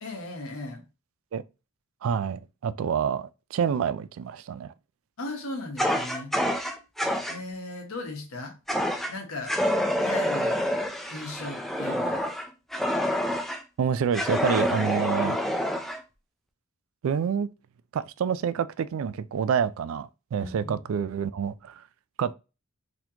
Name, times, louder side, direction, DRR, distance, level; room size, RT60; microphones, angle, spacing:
voice 1, 0.0-0.8 5.2-6.4 7.3-8.6 9.1-9.5 10.0-10.6 11.1-12.2 20.4-20.8, left 2 dB, 75° left, 1.1 m, -37 dB
voice 2, 2.0-4.7 6.4-6.6 13.8-15.4 17.0-17.5 17.9-21.8 22.2-22.3, right 7 dB, 70° right, 0.3 m, -28 dB
Fire, 5.8-7.4 8.7-9.1 9.5-13.6 14.1-16.0, equal, ahead, 0.4 m, -27 dB
4.1 x 2.9 x 2.8 m
head